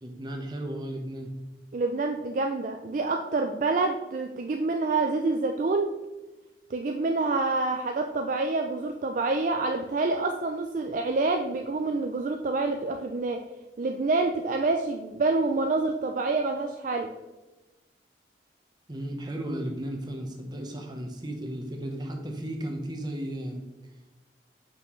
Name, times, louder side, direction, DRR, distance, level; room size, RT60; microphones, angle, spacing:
voice 1, 0.0-1.3 18.9-23.6, right 1 dB, 25° right, 2 dB, 0.9 m, -34 dB
voice 2, 1.7-5.9 6.7-13.4 13.8-17.1, right 3 dB, 45° right, 4 dB, 0.3 m, -27 dB
5.9 x 5.8 x 3.1 m, 1.1 s
head